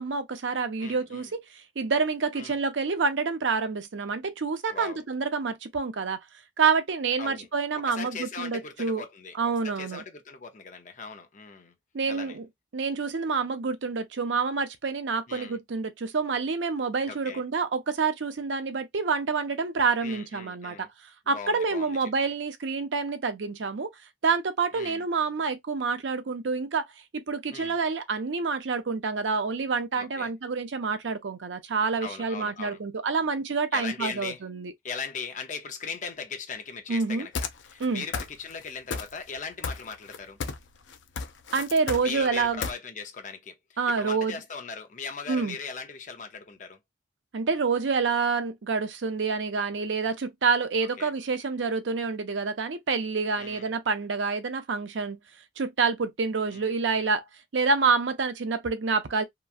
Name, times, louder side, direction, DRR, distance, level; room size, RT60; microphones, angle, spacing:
voice 1, 0.0-6.2 6.6-9.0 9.4-10.0 11.9-12.5 12.7-20.8 21.3-23.9 24.2-26.9 27.1-34.7 36.9-37.3 37.8-38.0 41.5-42.6 43.8-44.4 45.3-45.6 47.3-55.2 55.6-57.2 57.5-59.2, right 4 dB, 85° right, 0.6 m, -27 dB
voice 2, 0.8-1.3 2.4-2.6 4.7-5.0 7.2-7.5 7.7-11.7 12.1-12.4 15.3-15.6 17.0-17.4 20.0-20.9 21.3-22.1 24.7-25.1 27.5-27.8 29.9-30.3 32.0-32.8 33.7-34.4 34.8-40.4 42.0-46.8 51.0-51.1 53.3-53.7 56.5-57.1, left 5 dB, 45° left, 0.7 m, -39 dB
sound 1, 37.3-37.9 38.1-38.6 38.9-39.4 39.6-40.7 40.9-42.7, left 5 dB, 85° left, 0.5 m, -32 dB
3.0 x 2.3 x 2.4 m
head